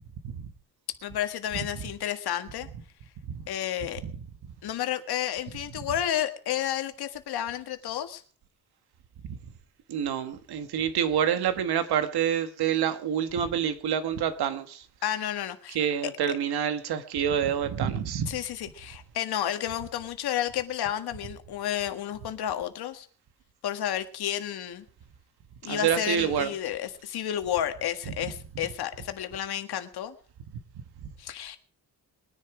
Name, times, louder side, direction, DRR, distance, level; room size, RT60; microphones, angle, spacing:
voice 1, 1.0-2.7 3.5-4.0 4.6-8.2 15.0-16.4 18.3-23.1 23.6-24.8 25.6-30.2 31.2-31.6, left 11 dB, 80° left, 1.7 m, -31 dB
voice 2, 9.9-14.8 15.7-18.3 25.7-26.5, right 9 dB, 80° right, 1.5 m, -27 dB
21.5 x 10.5 x 4.9 m
cardioid pair, 150°, 38 cm